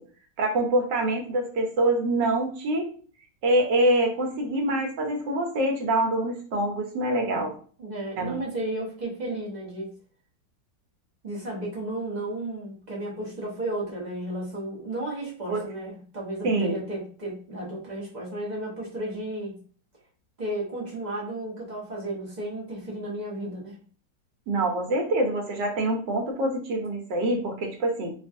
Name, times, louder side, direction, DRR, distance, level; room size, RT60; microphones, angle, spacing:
voice 1, 0.4-2.9 3.4-7.5 8.2-8.4 15.5-15.6 16.4-16.8 24.5-28.1, right 1 dB, 80° right, 2 dB, 1.4 m, -25 dB
voice 2, 7.8-9.9 11.2-19.6 20.4-23.8, right 1 dB, 40° right, -5 dB, 0.6 m, -33 dB
2.9 x 2.4 x 2.5 m, 0.43 s
omnidirectional pair, 1.9 m